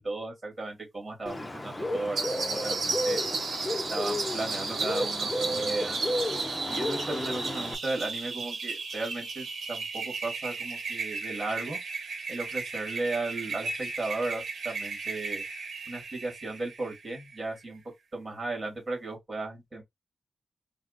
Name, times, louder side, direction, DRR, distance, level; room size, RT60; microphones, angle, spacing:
voice 1, 0.0-3.2 3.9-6.0 6.7-11.8 12.3-15.4 15.9-17.8 18.1-19.8, right 2 dB, 20° right, 1.6 m, -35 dB
Bird, 1.3-7.8, left 1 dB, 15° left, 0.6 m, -32 dB
sound 1, 2.2-17.4, right 4 dB, 70° right, 1.0 m, -35 dB
3.5 x 2.0 x 3.6 m
wide cardioid pair, 145°, 0 cm